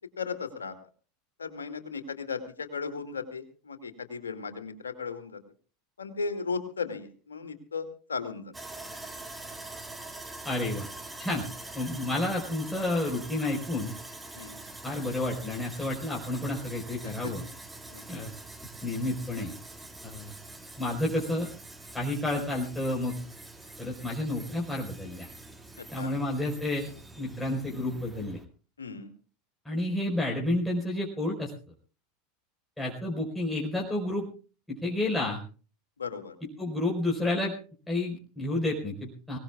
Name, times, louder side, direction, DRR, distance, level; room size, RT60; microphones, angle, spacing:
voice 1, 0.2-0.7 1.4-5.4 6.0-8.5 14.4-14.6 17.2-17.3 17.9-18.0 25.8-26.1 28.8-29.1 36.0-36.3, left 5 dB, 85° left, 6 dB, 2.3 m, -36 dB
Sawing, 8.5-28.4, right 2 dB, 10° right, 2.3 m, -45 dB
voice 2, 10.4-10.9 11.2-11.4 11.7-13.9 14.8-17.4 18.1-18.3 18.8-19.5 20.0-20.3 20.8-21.5 21.9-23.2 23.8-25.3 25.9-26.9 27.2-28.4 29.6-31.5 32.8-34.3 34.7-35.4 36.6-37.5 37.9-39.4, left 1 dB, 10° left, -3 dB, 4.7 m, -30 dB
24.5 x 18.5 x 2.4 m, 0.37 s
figure-of-eight pair, 85°, 0 cm